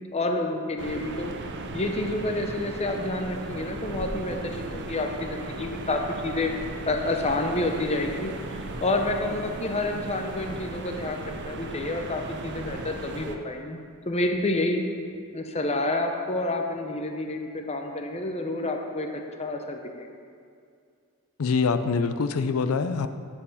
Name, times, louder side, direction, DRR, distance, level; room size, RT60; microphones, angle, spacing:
voice 1, 0.1-1.3 1.7-6.5 6.9-13.8 14.1-14.8 15.3-20.1, left 2 dB, 30° left, 3 dB, 0.7 m, -29 dB
sound 1, 0.8-13.4, right 2 dB, 55° right, 0.6 m, -36 dB
voice 2, 21.4-23.1, left 5 dB, 70° left, 10 dB, 0.5 m, -24 dB
9.0 x 4.6 x 7.1 m, 2.3 s
head